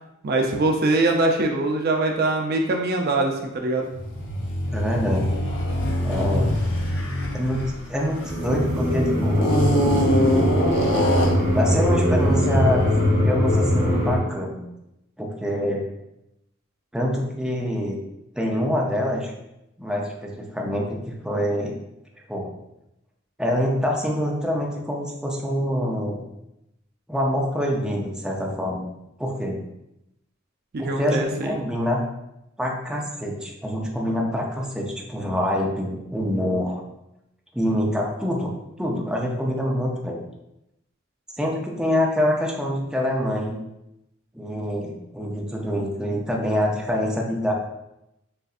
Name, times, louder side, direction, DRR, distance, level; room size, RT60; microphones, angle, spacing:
voice 1, 0.2-3.9 30.7-31.5, right 2 dB, 50° right, 2 dB, 0.5 m, -22 dB
sound 1, 3.9-8.7 9.4-11.5, left 1 dB, 65° left, 0.9 m, -24 dB
voice 2, 4.7-5.3 6.0-6.5 7.3-9.5 11.5-14.6 15.2-15.8 16.9-18.0 18.4-19.3 19.8-21.7 22.3-22.5 23.4-26.2 27.1-28.8 29.2-29.6 30.8-32.0 32.6-36.8 37.5-38.5 38.8-40.2 41.3-43.6 44.3-47.5, equal, 5° right, -2 dB, 0.6 m, -25 dB
sound 2, 8.2-14.2, equal, 35° right, 1.5 m, -21 dB
6.6 x 2.5 x 2.4 m, 0.86 s
head